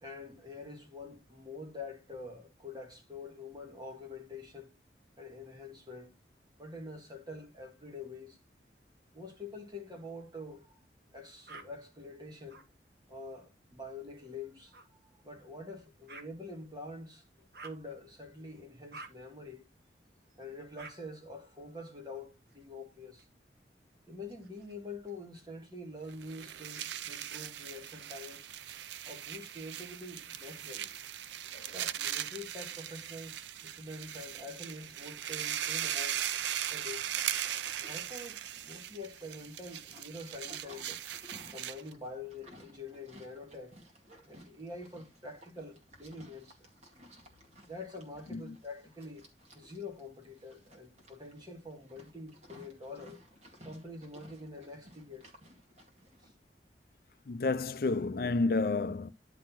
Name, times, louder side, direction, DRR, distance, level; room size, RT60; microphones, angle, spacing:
voice 1, 0.0-4.7 5.2-6.1 6.6-8.4 9.1-10.8 11.1-12.6 13.1-19.6 20.3-23.3 24.1-28.5 29.0-30.9 31.7-36.2 36.7-37.1 37.8-41.0 41.5-43.8 44.3-46.7 47.6-49.3 49.5-53.2 53.6-55.3 56.2-56.3, left 2 dB, 25° right, 2.1 m, -46 dB
sound 1, 11.5-11.7 12.5-12.7 14.7-14.9 16.1-16.3 17.5-17.8 18.9-19.1 20.8-20.9 22.5-23.3 24.2-25.1 26.0-26.9, right 3 dB, 60° right, 1.4 m, -51 dB
sound 2, 26.1-41.9, right 11 dB, 85° right, 0.5 m, -39 dB
Livestock farm animals working animals, 37.1-56.3, equal, 40° right, 2.1 m, -58 dB
voice 2, 57.3-59.1, left 3 dB, 55° left, 0.5 m, -30 dB
10.5 x 4.1 x 4.4 m
head